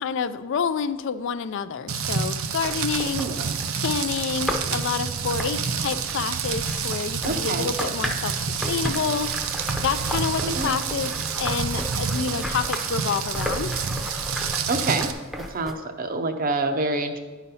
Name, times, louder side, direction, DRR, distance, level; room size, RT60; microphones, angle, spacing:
voice 1, 0.0-3.3 3.7-9.3 9.8-13.8, left 6 dB, 60° left, 13 dB, 0.4 m, -28 dB
Rain, 1.9-15.1, right 6 dB, 85° right, 0.6 m, -28 dB
sound 1, 2.6-15.7, equal, ahead, 0.7 m, -35 dB
voice 2, 3.2-3.5 7.2-7.7 10.4-10.7 14.7-15.1 15.5-17.2, right 2 dB, 45° right, 7 dB, 0.7 m, -27 dB
11.0 x 4.1 x 5.5 m, 1.3 s
head